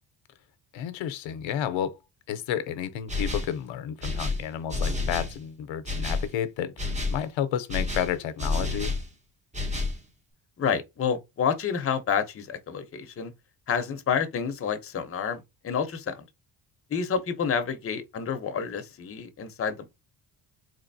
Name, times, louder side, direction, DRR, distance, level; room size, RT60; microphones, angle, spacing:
voice 1, 0.7-2.0 2.3-8.9, left 10 dB, 80° left, 0.7 m, -31 dB
sound 1, 3.1-3.6 4.0-5.4 5.9-6.3 6.8-7.2 7.7-9.1 9.5-10.0, left 3 dB, 15° right, 0.7 m, -29 dB
voice 2, 10.6-13.3 13.7-16.3 16.9-19.9, left 7 dB, 30° left, 0.7 m, -29 dB
3.9 x 3.1 x 2.6 m
cardioid pair, 110°, 46 cm